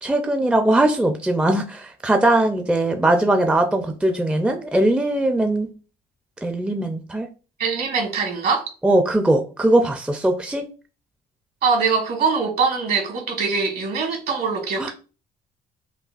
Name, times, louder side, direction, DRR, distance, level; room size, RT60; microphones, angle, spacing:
voice 1, 0.0-5.7 6.4-7.3 8.8-10.6 14.8-14.9, right 1 dB, 5° right, 0.5 m, -20 dB
voice 2, 7.6-8.6 11.6-14.9, right 5 dB, 60° right, 1.7 m, -22 dB
5.3 x 2.3 x 2.5 m
supercardioid pair, 75°, 18 cm